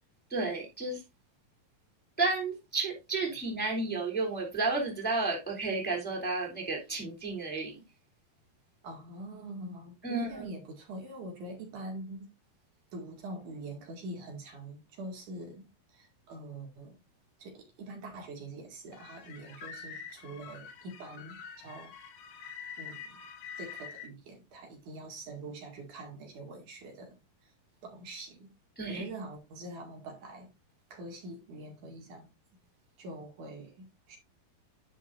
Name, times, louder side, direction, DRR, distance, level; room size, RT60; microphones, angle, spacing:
voice 1, 0.3-1.0 2.2-7.8 10.0-10.5 28.8-29.0, right 3 dB, 5° left, 2.6 m, -32 dB
voice 2, 8.8-12.3 12.9-17.0 17.4-21.9 22.8-23.2 23.6-27.1 27.8-28.5 28.9-30.5 30.9-32.3 33.0-34.2, right 2 dB, 65° right, 3.5 m, -44 dB
sound 1, 18.9-24.1, left 6 dB, 70° left, 3.1 m, -46 dB
10.5 x 7.4 x 2.6 m
omnidirectional pair, 4.0 m